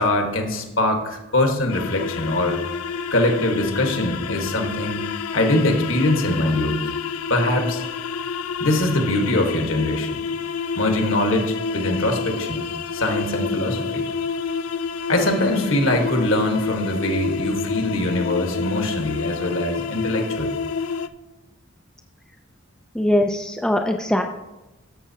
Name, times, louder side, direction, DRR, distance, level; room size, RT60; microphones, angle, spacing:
voice 1, 0.0-2.6 3.1-5.0 5.3-6.8 7.3-7.8 8.6-10.1 10.7-12.6 12.9-14.1 15.1-20.6, left 1 dB, 65° left, 3 dB, 1.4 m, -22 dB
sound 1, 1.7-21.1, left 6 dB, 85° left, 0.4 m, -29 dB
voice 2, 22.9-24.2, left 1 dB, 5° left, 2 dB, 0.4 m, -21 dB
13.0 x 7.0 x 2.8 m, 1.0 s
head